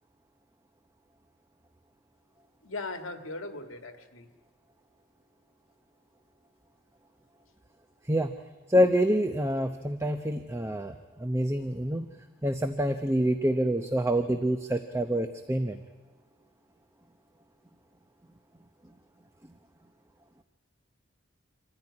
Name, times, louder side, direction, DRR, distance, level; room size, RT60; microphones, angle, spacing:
voice 1, 2.6-4.3, left 2 dB, 75° left, 7 dB, 2.1 m, -38 dB
voice 2, 8.7-12.1 12.4-15.8, equal, 15° right, 7 dB, 0.8 m, -26 dB
26.0 x 15.0 x 9.8 m, 1.3 s
head